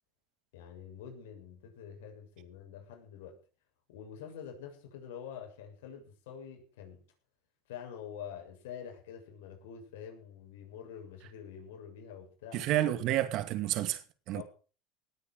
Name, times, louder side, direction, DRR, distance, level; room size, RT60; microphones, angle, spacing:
voice 1, 0.5-3.4 3.9-7.0 7.7-12.7 14.3-14.4, left 8 dB, 90° left, 7.1 m, -46 dB
voice 2, 12.5-14.0 14.3-14.4, right 13 dB, 55° right, 2.4 m, -30 dB
19.0 x 9.6 x 6.4 m
supercardioid pair, 120°, 0 cm